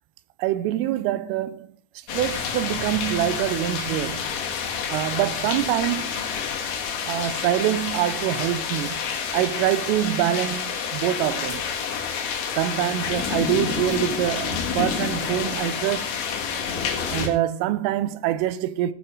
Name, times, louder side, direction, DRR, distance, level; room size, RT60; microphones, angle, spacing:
voice 1, 0.4-1.7 2.1-4.3 4.9-6.1 7.1-9.0 9.3-11.7 12.6-16.2 17.1-18.9, right 13 dB, 80° right, 3.3 m, -25 dB
sound 1, 2.1-17.3, left 6 dB, 60° left, 3.3 m, -28 dB
17.0 x 6.0 x 4.7 m
omnidirectional pair, 5.9 m